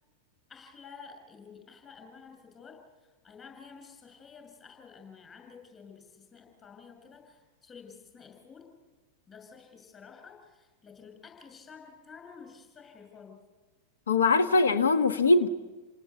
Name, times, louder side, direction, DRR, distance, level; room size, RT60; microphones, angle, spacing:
voice 1, 0.5-2.8 3.2-8.7 9.3-13.4, left 5 dB, 20° left, 4 dB, 6.7 m, -51 dB
voice 2, 14.1-15.5, left 3 dB, 70° left, 10 dB, 1.5 m, -22 dB
29.0 x 18.5 x 8.3 m, 1.3 s
figure-of-eight pair, 90°, 0 cm